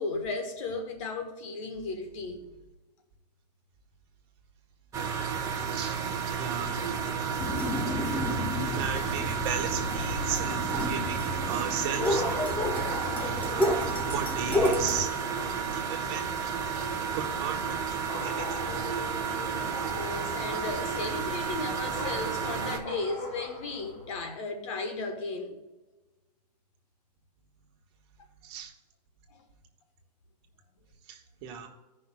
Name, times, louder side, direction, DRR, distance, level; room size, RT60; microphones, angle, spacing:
voice 1, 0.0-2.4 19.9-25.6 29.3-29.4, left 3 dB, 50° left, 1.3 m, -35 dB
sound 1, 4.9-22.8, right 6 dB, 15° right, 1.1 m, -32 dB
voice 2, 6.4-6.7 8.5-12.2 13.2-16.6 17.1-18.6 28.4-28.7 31.1-31.7, right 8 dB, 40° right, 1.4 m, -36 dB
sound 2, 7.4-15.0, left 1 dB, 10° left, 0.7 m, -31 dB
sound 3, 11.6-24.2, left 1 dB, 30° left, 2.5 m, -43 dB
16.5 x 5.6 x 2.3 m
hypercardioid pair, 150°, 21 cm